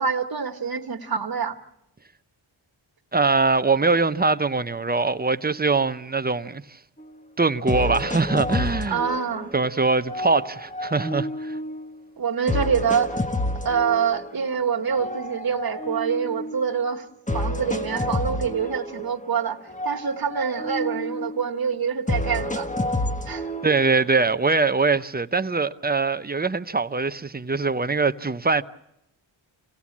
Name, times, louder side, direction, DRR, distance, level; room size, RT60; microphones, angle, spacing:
voice 1, 0.0-1.6 8.9-9.5 12.2-13.1 13.6-17.0 17.3-19.6 19.8-22.7 23.3-23.5, right 6 dB, 50° right, 1.6 m, -25 dB
voice 2, 3.1-6.6 7.4-9.0 9.5-11.6 23.6-28.6, right 3 dB, 20° right, 0.7 m, -22 dB
sound 1, 7.0-7.1 7.7-9.7 10.1-11.9 12.5-14.4 14.9-16.7 17.3-19.4 19.7-21.5 22.1-24.1, left 1 dB, 15° left, 1.2 m, -29 dB
26.0 x 17.0 x 7.3 m
cardioid pair, 55°, 48 cm